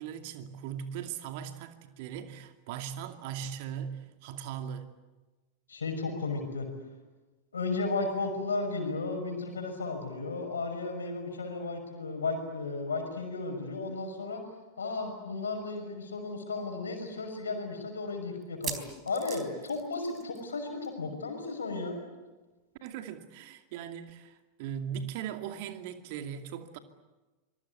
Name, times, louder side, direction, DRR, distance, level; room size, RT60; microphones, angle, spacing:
voice 1, 0.0-4.9 22.8-26.8, right 8 dB, 50° right, 2.5 m, -39 dB
voice 2, 5.7-6.7 7.5-14.4 14.8-22.0, left 3 dB, 70° left, 6.1 m, -34 dB
sound 1, 15.8-15.9 16.2-16.3 16.9-17.0 18.4-20.6 20.8-21.0 21.3-21.4 22.9-23.0, right 8 dB, 30° right, 3.8 m, -41 dB
26.0 x 22.5 x 8.5 m
figure-of-eight pair, 90°, 0 cm